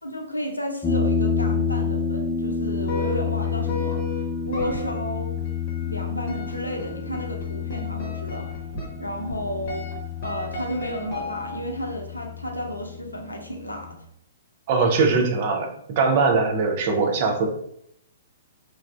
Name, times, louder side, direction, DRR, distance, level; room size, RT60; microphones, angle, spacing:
voice 1, 0.0-4.0 4.4-5.4 5.8-8.5 9.0-9.9 10.2-14.0, equal, 90° left, 2 dB, 0.5 m, -32 dB
sound 1, 0.8-13.9, left 5 dB, 15° left, 0.4 m, -29 dB
sound 2, 2.9-11.8, left 1 dB, 50° left, 0.8 m, -37 dB
voice 2, 14.7-15.7 16.0-17.5, right 4 dB, 45° right, 4 dB, 0.5 m, -21 dB
3.2 x 2.3 x 2.3 m, 0.73 s
figure-of-eight pair, 115°, 0 cm